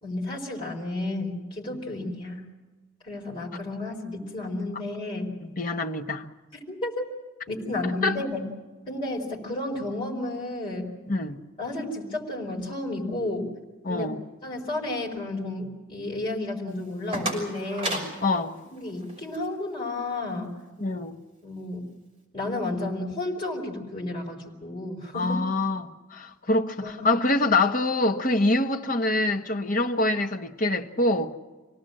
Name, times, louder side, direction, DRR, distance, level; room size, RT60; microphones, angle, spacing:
voice 1, 0.0-2.4 3.0-5.3 6.5-7.0 7.5-8.5 8.9-10.9 11.6-13.5 13.9-14.1 14.4-18.0 18.7-20.5 21.4-21.8 22.3-25.4 26.8-27.2, left 2 dB, 25° left, 4.6 m, -32 dB
voice 2, 5.4-6.3 8.0-8.2 11.1-11.4 13.8-14.2 18.2-18.6 20.8-21.2 25.1-31.3, left 2 dB, 40° left, 1.4 m, -25 dB
sound 1, 16.7-19.5, right 1 dB, 25° right, 6.1 m, -34 dB
26.5 x 18.0 x 7.8 m
head